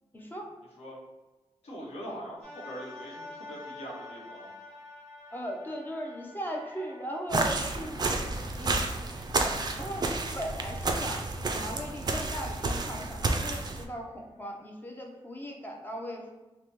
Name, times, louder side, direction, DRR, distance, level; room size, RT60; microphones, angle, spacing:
voice 1, 0.1-0.5 2.1-2.2 5.3-8.8 9.8-11.2 11.5-16.3, equal, 20° left, 0 dB, 0.5 m, -38 dB
voice 2, 1.6-4.5, equal, 70° left, -4 dB, 0.9 m, -42 dB
sound 1, 2.4-12.6 13.2-13.3, left 2 dB, 5° left, 1.0 m, -49 dB
sound 2, 7.3-13.8, right 3 dB, 40° right, 0.3 m, -31 dB
3.2 x 2.0 x 2.9 m, 1.2 s
cardioid pair, 80°, 11 cm